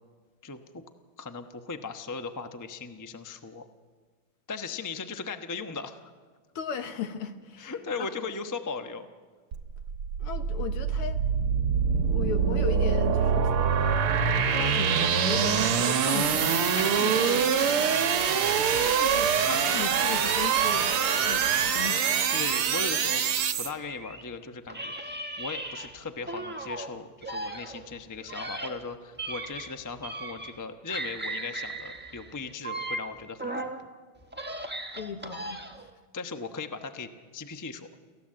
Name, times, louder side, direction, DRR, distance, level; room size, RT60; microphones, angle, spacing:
voice 1, 0.4-0.8 1.2-3.6 4.5-6.1 7.6-9.1 16.7-17.9 18.5-19.0 22.3-23.2 23.6-25.1 25.4-33.7 36.1-37.9, left 4 dB, 30° left, 7 dB, 0.3 m, -38 dB
voice 2, 6.6-7.7 8.0-8.1 10.2-11.2 11.9-13.4 14.5-16.5 16.8-17.5 18.9-21.5 21.7-22.2 35.0-35.6, left 7 dB, 85° left, 7 dB, 2.3 m, -36 dB
sound 1, 9.5-23.7, right 7 dB, 80° right, 2.1 m, -25 dB
Children's Toy Animal Sounds, 22.2-24.3 24.7-26.9 27.2-30.6 30.9-33.8 34.2-35.9, right 2 dB, 10° right, 0.7 m, -37 dB
28.5 x 15.5 x 7.6 m, 1.5 s
omnidirectional pair, 2.4 m